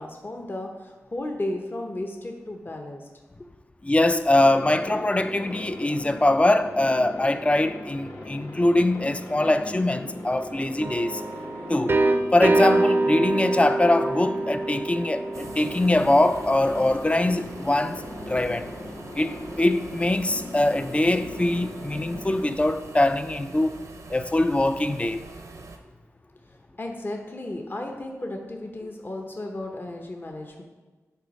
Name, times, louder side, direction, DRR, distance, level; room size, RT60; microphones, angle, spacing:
voice 1, 0.0-3.1 26.4-30.6, left 1 dB, 40° left, 0.9 m, -34 dB
voice 2, 3.8-11.2 11.7-12.0 12.3-18.7 19.2-23.7 24.1-25.2, left 1 dB, 20° left, 0.4 m, -23 dB
Aircraft, 4.3-22.6, left 1 dB, 60° left, 1.8 m, -39 dB
sound 1, 10.8-16.5, right 2 dB, 40° right, 0.5 m, -25 dB
sound 2, 15.3-25.8, right 3 dB, 75° right, 0.8 m, -43 dB
8.2 x 4.0 x 5.3 m
cardioid pair, 60°, 6 cm